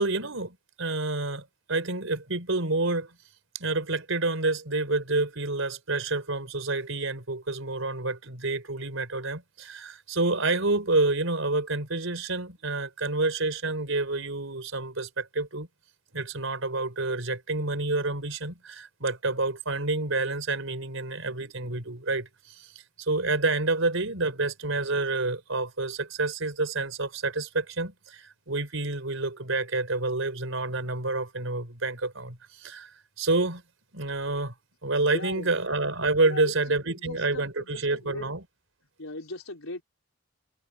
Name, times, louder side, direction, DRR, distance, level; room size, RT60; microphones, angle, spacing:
voice 1, 0.0-3.1 3.5-15.7 16.1-22.7 23.0-32.9 33.2-33.6 33.9-34.5 34.8-38.4, right 2 dB, 75° right, 4.3 m, -28 dB
voice 2, 35.1-35.6 36.2-36.6 36.8-38.3 39.0-39.8, left 2 dB, 85° left, 4.6 m, -39 dB
head